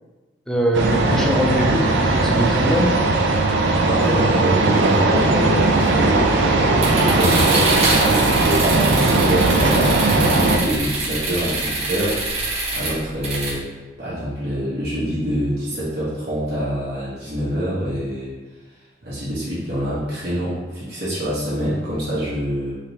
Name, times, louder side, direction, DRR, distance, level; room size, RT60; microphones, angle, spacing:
voice 1, 0.5-3.0, equal, 5° left, -1 dB, 0.5 m, -21 dB
sound 1, 0.7-10.6, right 2 dB, 80° right, 0.5 m, -18 dB
voice 2, 3.5-13.6 14.0-18.3 19.0-22.7, equal, 60° right, -9 dB, 1.2 m, -25 dB
sound 2, 6.8-13.5, right 2 dB, 35° right, 0.9 m, -25 dB
3.7 x 3.3 x 2.8 m, 1.2 s
head